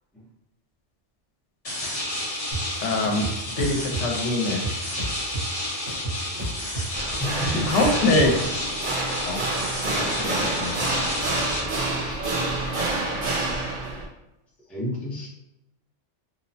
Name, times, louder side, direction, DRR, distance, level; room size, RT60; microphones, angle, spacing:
sound 1, 1.6-11.6, left 1 dB, 35° left, 0.7 m, -31 dB
sound 2, 2.5-2.6 3.0-4.0 4.5-5.6 5.9-8.3, right 2 dB, 85° right, 1.3 m, -31 dB
voice 1, 2.8-3.2 3.6-4.9 7.7-8.4 9.2-9.5 9.8-10.8, left 2 dB, 85° left, 1 dB, 0.9 m, -24 dB
voice 2, 6.3-7.8 10.4-10.5 14.7-15.3, left 1 dB, ahead, -6 dB, 0.5 m, -32 dB
sound 3, 6.9-14.1, right 2 dB, 50° right, 0.7 m, -28 dB
3.0 x 2.0 x 2.6 m, 0.92 s
omnidirectional pair, 1.2 m